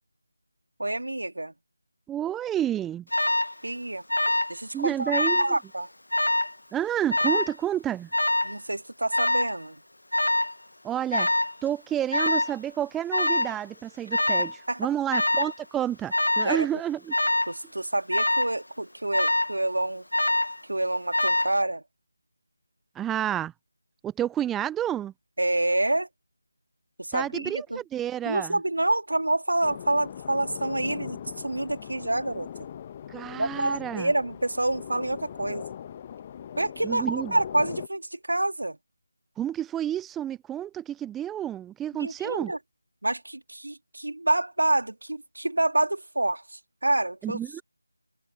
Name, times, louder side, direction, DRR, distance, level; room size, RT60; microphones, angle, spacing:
voice 1, 0.8-1.5 3.6-4.0 4.5-5.1 5.4-5.9 8.4-9.8 14.7-14.9 16.4-16.7 17.5-20.0 20.6-21.8 25.4-26.1 27.0-27.8 28.2-31.2 31.4-32.5 33.3-35.7 36.6-38.8 42.0-42.6 43.0-47.6, right 1 dB, 75° right, 2.6 m, -27 dB
voice 2, 2.1-3.0 4.7-5.6 6.7-8.1 10.8-11.3 11.6-17.1 23.0-23.5 24.0-25.1 27.1-28.6 33.1-34.1 36.8-37.3 39.4-42.5 47.2-47.6, right 11 dB, 5° right, 0.3 m, -30 dB
Alarm, 3.1-3.5 4.1-4.6 4.9-5.5 6.1-6.5 7.1-7.6 8.1-8.6 9.1-9.6 10.1-10.5 11.1-11.5 12.1-12.5 13.1-13.6 14.1-14.6 15.1-15.5 16.1-16.5 17.1-17.6 18.1-18.5 19.1-19.6 20.1-20.6 21.1-21.6, left 1 dB, 80° left, 1.1 m, -24 dB
sound 1, 29.6-37.9, left 9 dB, 20° left, 1.0 m, -40 dB
figure-of-eight pair, 165°, 0 cm